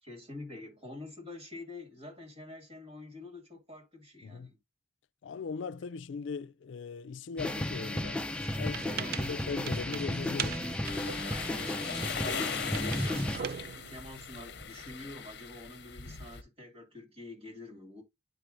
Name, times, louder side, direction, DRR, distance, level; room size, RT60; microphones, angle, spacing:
voice 1, 0.0-4.6 8.9-9.3 11.3-18.0, left 2 dB, 30° right, 2.1 m, -47 dB
voice 2, 5.2-8.2 8.6-10.6, left 5 dB, 85° left, 0.4 m, -39 dB
sound 1, 7.4-13.4, left 1 dB, 5° left, 0.5 m, -34 dB
sound 2, 8.4-14.7, right 8 dB, 55° right, 0.4 m, -42 dB
sound 3, 10.8-16.4, left 7 dB, 60° left, 0.8 m, -40 dB
9.2 x 4.6 x 2.5 m
head